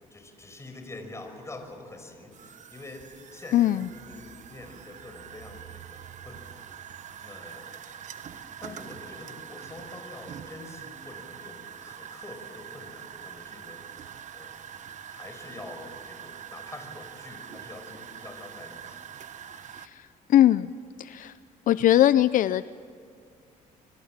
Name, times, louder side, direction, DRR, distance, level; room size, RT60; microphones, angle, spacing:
voice 1, 0.1-6.6 7.2-7.8 8.2-14.1 14.3-14.6 15.1-19.1, left 2 dB, 20° left, 5 dB, 5.5 m, -45 dB
sound 1, 2.3-19.9, right 9 dB, 55° right, 1.1 m, -44 dB
voice 2, 3.5-3.9 19.8-20.7 21.0-21.4 21.7-22.6, left 12 dB, 65° left, 15 dB, 0.5 m, -21 dB
26.5 x 24.0 x 7.5 m, 2.2 s
cardioid pair, 100°, 15 cm